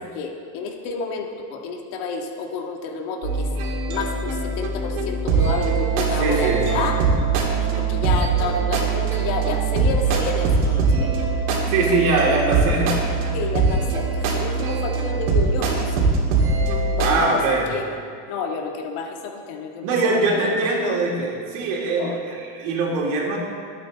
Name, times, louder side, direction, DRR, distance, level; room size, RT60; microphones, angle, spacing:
voice 1, 0.1-3.5 3.9-7.0 7.5-11.2 12.8-12.9 13.3-15.9 16.9-17.4 17.7-17.8 18.3-19.9 20.1-21.0 22.0-22.2, left 4 dB, 55° left, 2 dB, 1.9 m, -29 dB
sound 1, 3.2-17.2, right 4 dB, 85° right, 3.0 m, -22 dB
voice 2, 6.2-6.6 11.7-13.0 17.0-17.7 19.8-23.4, right 3 dB, 65° right, -2 dB, 3.6 m, -22 dB
21.5 x 8.9 x 4.1 m, 2.1 s
supercardioid pair, 140°, 43 cm